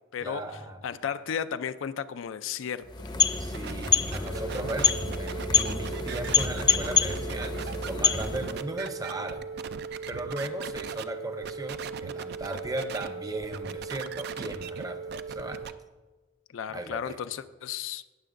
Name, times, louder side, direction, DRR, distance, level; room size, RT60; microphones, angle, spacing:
voice 1, 0.2-0.8 3.4-9.4 10.1-15.6 16.7-17.2, right 1 dB, 20° right, 7 dB, 0.7 m, -37 dB
voice 2, 0.8-2.8 16.5-18.0, left 8 dB, 75° left, 12 dB, 0.4 m, -33 dB
sound 1, 2.8-8.6, left 6 dB, 20° left, 0.6 m, -27 dB
sound 2, 3.5-11.0 11.4-13.1 13.4-15.7, right 7 dB, 55° right, 0.4 m, -40 dB
sound 3, 4.2-15.6, right 5 dB, 85° right, 1.5 m, -39 dB
18.5 x 6.8 x 2.5 m, 1.2 s
head